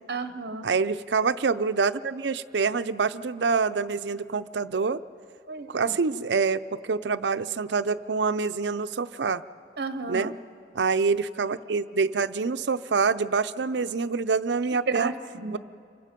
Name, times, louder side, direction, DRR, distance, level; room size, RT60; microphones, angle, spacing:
voice 1, 0.1-0.7 5.5-5.9 9.8-10.3 14.9-15.6, right 4 dB, 65° right, 10 dB, 0.9 m, -32 dB
voice 2, 0.6-5.0 5.7-9.4 10.1-10.3 10.7-15.1 15.5-15.6, right 4 dB, 80° right, 12 dB, 0.6 m, -26 dB
28.0 x 24.0 x 5.2 m, 2.4 s
head